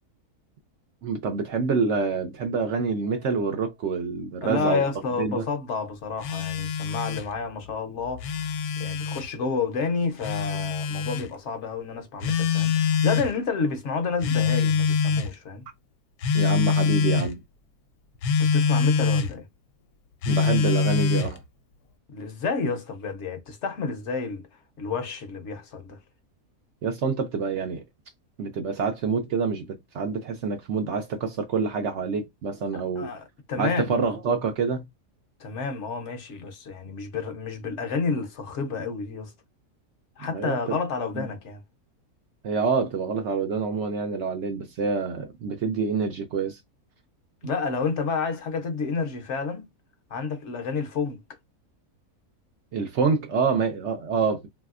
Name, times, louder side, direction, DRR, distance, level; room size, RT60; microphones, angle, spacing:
voice 1, 1.0-4.8 5.2-5.4 16.3-17.4 20.3-21.4 26.8-27.8 28.4-33.1 33.6-34.8 40.2-40.8 41.1-41.3 42.4-46.6 52.7-54.5, right 5 dB, 65° right, 0.7 m, -27 dB
voice 2, 4.4-8.5 8.8-15.7 18.4-19.5 22.1-24.5 24.8-26.0 32.7-33.9 35.4-39.3 40.2-41.6 47.4-49.7 50.1-51.2, left 5 dB, 60° left, 0.9 m, -30 dB
Telephone, 6.2-7.3 8.1-9.3 10.2-11.3 12.2-13.3 14.2-15.3 16.2-17.3 18.2-19.3 20.2-21.4, left 5 dB, 80° left, 1.1 m, -24 dB
3.2 x 2.7 x 2.4 m
omnidirectional pair, 1.6 m